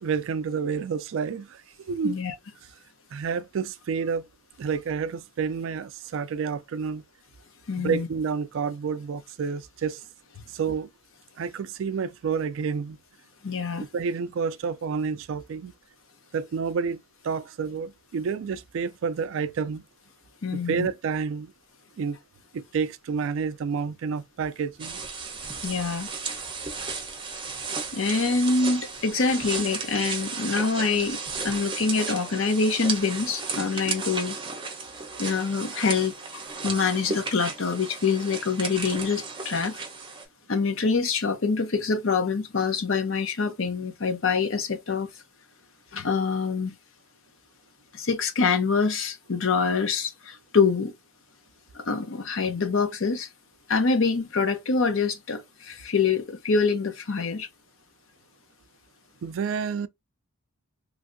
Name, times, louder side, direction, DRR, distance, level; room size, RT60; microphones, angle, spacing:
voice 1, 0.0-2.2 3.1-4.3 4.6-7.0 7.8-10.0 10.5-10.9 11.4-13.0 13.9-15.7 16.3-19.8 20.5-21.5 22.0-22.2 22.5-25.0 59.2-59.9, right 6 dB, 60° right, 0.3 m, -29 dB
voice 2, 2.0-2.3 7.7-8.1 13.4-13.9 20.4-20.9 25.6-26.1 27.9-34.4 35.2-36.2 36.6-39.8 40.5-45.1 45.9-46.8 47.9-50.9 51.7-53.3 53.7-57.5, left 4 dB, 60° left, 0.6 m, -25 dB
sound 1, 24.8-40.2, right 4 dB, 20° right, 0.7 m, -34 dB
3.1 x 2.6 x 2.5 m
head